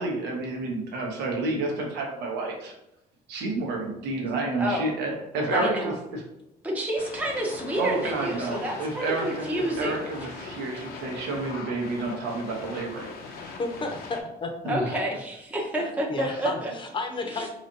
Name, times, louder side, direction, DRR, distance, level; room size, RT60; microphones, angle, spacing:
voice 1, 0.0-2.7 3.3-6.2 7.8-9.5 9.8-13.3 14.6-14.9, right 2 dB, 85° right, 0 dB, 0.9 m, -30 dB
voice 2, 4.6-4.9 5.5-5.9 6.6-10.1 14.7-16.7 17.2-17.5, right 1 dB, 10° right, -2 dB, 0.7 m, -29 dB
sound 1, 7.0-14.2, left 4 dB, 65° left, 0.6 m, -40 dB
voice 3, 13.6-14.5 15.8-17.5, left 3 dB, 30° left, 4 dB, 0.7 m, -32 dB
4.0 x 2.9 x 2.6 m, 0.84 s
cardioid pair, 110°, 17 cm